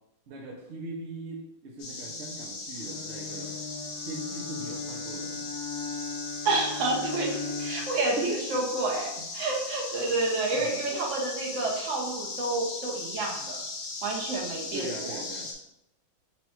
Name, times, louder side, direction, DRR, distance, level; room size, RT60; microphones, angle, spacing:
voice 1, 0.3-3.6 4.0-5.5 7.9-8.6 9.2-9.3 10.5-10.8 14.7-15.5, right 2 dB, 80° right, 0 dB, 0.6 m, -40 dB
sound 1, 1.8-15.5, left 3 dB, 60° left, 1.2 m, -38 dB
Bowed string instrument, 2.8-8.0, left 5 dB, 80° left, 1.5 m, -38 dB
voice 2, 6.4-9.1 9.3-13.6 14.0-15.2, right 2 dB, 55° right, -1 dB, 0.9 m, -29 dB
4.3 x 2.3 x 4.3 m, 0.82 s
omnidirectional pair, 2.1 m